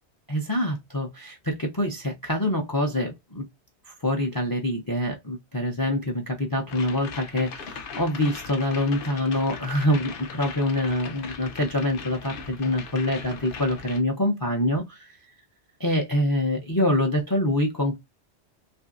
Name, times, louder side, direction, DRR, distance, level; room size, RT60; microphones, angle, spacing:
voice 1, 0.3-3.4 3.9-15.2 15.8-18.0, left 1 dB, 25° left, 0.5 m, -25 dB
sound 1, 6.7-14.0, left 5 dB, 60° left, 0.8 m, -39 dB
3.0 x 2.6 x 2.4 m
omnidirectional pair, 1.1 m